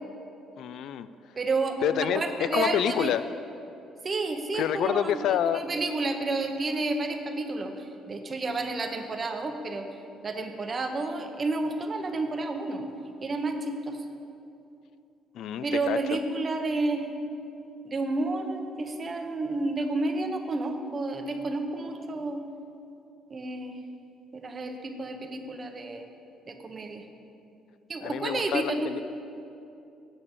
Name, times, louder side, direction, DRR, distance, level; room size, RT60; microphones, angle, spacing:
voice 1, 0.6-1.1 1.8-3.2 4.5-5.6 15.3-16.0 28.0-29.0, left 10 dB, 60° left, 13 dB, 0.3 m, -27 dB
voice 2, 1.3-1.8 2.1-3.1 4.0-9.9 10.2-12.8 13.2-14.0 15.6-17.1 17.8-22.4 23.3-23.7 24.3-26.0 26.5-27.0 27.9-28.9, right 3 dB, 25° right, 5 dB, 0.8 m, -30 dB
8.9 x 7.4 x 8.2 m, 2.7 s
cardioid pair, 170°, 0 cm